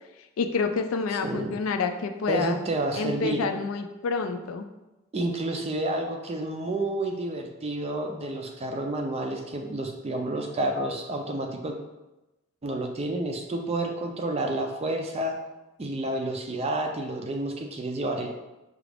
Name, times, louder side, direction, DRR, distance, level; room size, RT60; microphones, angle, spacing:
voice 1, 0.4-2.6 2.9-4.6, left 4 dB, 70° left, 7 dB, 0.4 m, -28 dB
voice 2, 1.2-1.5 2.3-3.5 5.1-11.8 12.6-15.3 15.8-18.3, right 2 dB, 30° right, 3 dB, 0.4 m, -30 dB
4.8 x 2.4 x 3.3 m, 1.0 s
head